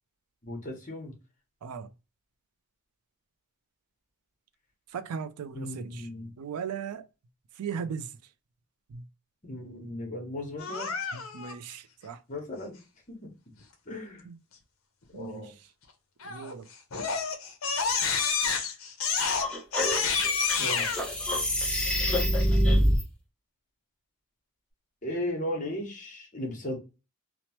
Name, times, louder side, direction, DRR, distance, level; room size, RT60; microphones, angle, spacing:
voice 1, 0.4-1.1 5.5-6.3 9.4-10.9 12.3-12.8 13.1-13.2 13.9-14.2 15.1-15.5 20.6-20.9 25.0-26.8, left 1 dB, 35° left, 1.0 m, -36 dB
voice 2, 4.9-6.1 6.4-7.1 7.6-8.1 8.9-9.0 11.1-12.2 14.2-14.4 15.1-15.7 16.2-16.7, right 6 dB, 85° right, 0.4 m, -38 dB
Crying sobbing, 10.6-11.5 16.2-16.5 16.9-21.0, left 5 dB, 60° left, 0.6 m, -29 dB
sound 1, 19.3-23.0, equal, 5° left, 0.5 m, -26 dB
2.9 x 2.0 x 2.8 m
head